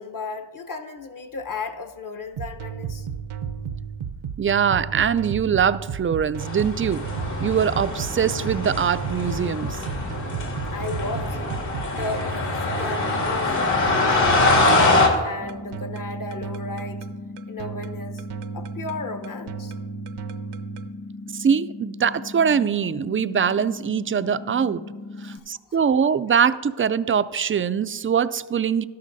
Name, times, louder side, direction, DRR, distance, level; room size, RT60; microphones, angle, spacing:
voice 1, 0.0-3.1 10.7-11.4 11.9-13.6 13.9-14.9 15.2-17.0 17.5-18.2 18.5-19.7 25.2-25.4 25.7-25.8, left 3 dB, 40° left, 7 dB, 1.0 m, -34 dB
sound 1, 2.4-20.9, right 7 dB, 80° right, 0.7 m, -34 dB
voice 2, 4.4-7.1 7.4-9.8 21.3-24.8 25.2-28.8, right 7 dB, 30° right, 15 dB, 0.3 m, -22 dB
sound 2, 6.4-15.1, left 2 dB, 60° left, 2.4 m, -23 dB
sound 3, 15.4-25.4, left 2 dB, 15° left, 0.8 m, -38 dB
13.0 x 11.5 x 2.7 m, 1.4 s
cardioid pair, 55°, 50 cm